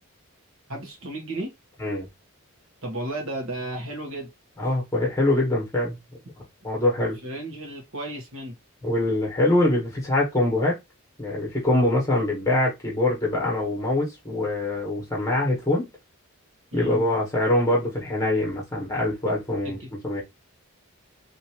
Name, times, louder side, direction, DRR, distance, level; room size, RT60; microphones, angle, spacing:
voice 1, 0.7-1.5 2.8-4.3 7.2-8.6 16.7-17.0 19.8-19.9, right 1 dB, 65° right, 1.5 m, -33 dB
voice 2, 4.6-6.0 6.6-7.2 8.8-10.8 11.2-15.9 16.7-19.8 20.0-20.2, left 1 dB, 15° left, 1.4 m, -24 dB
3.4 x 2.9 x 2.9 m
head